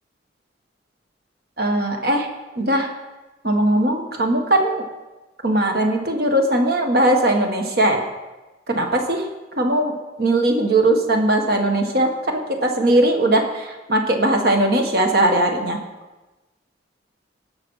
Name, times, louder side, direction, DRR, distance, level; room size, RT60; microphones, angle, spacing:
voice 1, 1.6-2.3 2.6-2.9 3.4-4.8 5.4-8.0 8.7-9.2 9.6-15.8, right 1 dB, 60° right, 3 dB, 1.6 m, -19 dB
17.5 x 5.9 x 5.6 m, 1.1 s
head